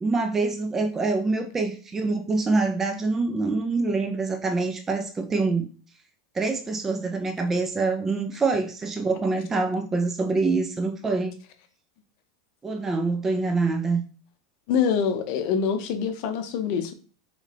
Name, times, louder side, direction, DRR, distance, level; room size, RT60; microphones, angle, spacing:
voice 1, 0.0-5.7 6.3-11.3 12.6-14.0, right 3 dB, 10° right, 4 dB, 0.4 m, -25 dB
voice 2, 14.7-16.9, left 7 dB, 50° left, 7 dB, 0.6 m, -25 dB
3.6 x 3.2 x 3.3 m, 0.37 s
supercardioid pair, 155°, 3 cm